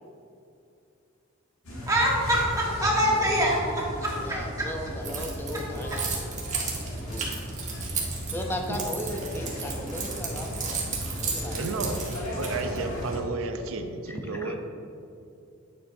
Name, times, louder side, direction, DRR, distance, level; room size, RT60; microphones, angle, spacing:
sound 1, 1.6-13.2, equal, 85° left, 1.7 m, -36 dB
voice 1, 1.9-4.7, equal, 15° right, -4 dB, 1.4 m, -25 dB
voice 2, 4.2-6.0 7.1-7.3 8.3-10.8 11.2-11.8 14.1-14.6, left 1 dB, 10° left, 2 dB, 0.5 m, -36 dB
Keys jangling, 5.0-12.8, right 5 dB, 35° right, 1.3 m, -34 dB
voice 3, 11.5-12.0 12.4-14.6, right 3 dB, 70° right, 6 dB, 0.6 m, -32 dB
9.1 x 7.2 x 2.7 m, 2.6 s
head